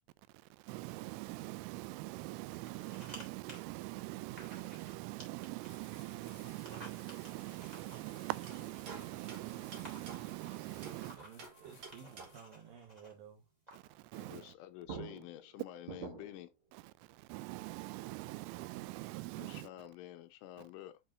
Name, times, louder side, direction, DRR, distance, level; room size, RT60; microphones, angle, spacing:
voice 1, 0.7-11.2 14.1-14.4 17.3-19.7, right 20 dB, 90° right, 3.2 m, -43 dB
sound 1, 2.5-3.2 3.5-3.6 4.4-4.9 5.2-5.8 6.5-8.9 9.5-9.6 9.8-11.4 11.9-13.1 13.7-13.9, equal, 10° right, 2.4 m, -54 dB
sound 2, 5.7-12.6, left 6 dB, 50° left, 2.8 m, -62 dB
sound 3, 8.5-11.0 11.4-12.6 14.5-14.6 14.9-16.5, right 6 dB, 50° right, 2.4 m, -49 dB
voice 2, 10.9-13.5 14.2-14.6, right 7 dB, 70° right, 2.2 m, -55 dB
voice 3, 14.1-16.5 19.4-21.0, left 13 dB, 85° left, 3.2 m, -49 dB
8.3 x 5.5 x 2.6 m
omnidirectional pair, 5.6 m